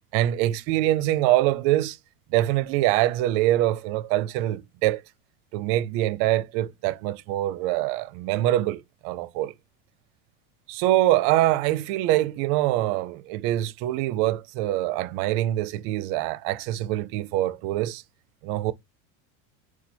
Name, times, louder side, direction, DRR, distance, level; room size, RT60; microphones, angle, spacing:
voice 1, 0.1-2.0 2.3-5.0 5.5-9.5 10.7-18.0 18.4-18.7, right 15 dB, 60° right, 0.6 m, -24 dB
4.0 x 2.3 x 4.4 m
cardioid pair, 150°, 37 cm